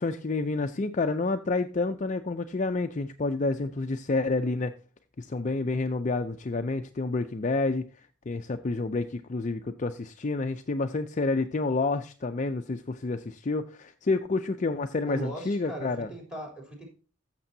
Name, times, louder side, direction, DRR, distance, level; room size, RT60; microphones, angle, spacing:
voice 1, 0.0-4.7 5.2-7.8 8.3-16.1, left 3 dB, 35° left, 7 dB, 0.4 m, -29 dB
voice 2, 15.0-16.9, right 1 dB, 5° right, 1 dB, 3.4 m, -38 dB
14.5 x 6.7 x 2.7 m, 0.37 s
head